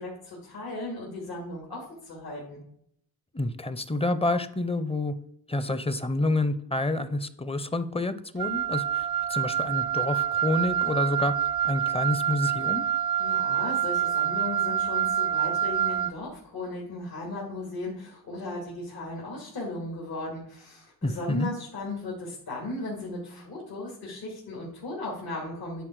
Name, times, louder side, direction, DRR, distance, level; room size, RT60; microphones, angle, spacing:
voice 1, 0.0-2.6 13.2-25.8, left 2 dB, 75° left, -4 dB, 2.7 m, -36 dB
voice 2, 3.3-5.1 5.5-11.3 11.6-12.9 21.0-21.5, left 2 dB, 15° left, 13 dB, 0.6 m, -28 dB
Wind instrument woodwind instrument, 8.4-16.2, right 9 dB, 75° right, 0.5 m, -27 dB
10.0 x 4.5 x 4.6 m, 0.70 s
cardioid pair, 90°, 37 cm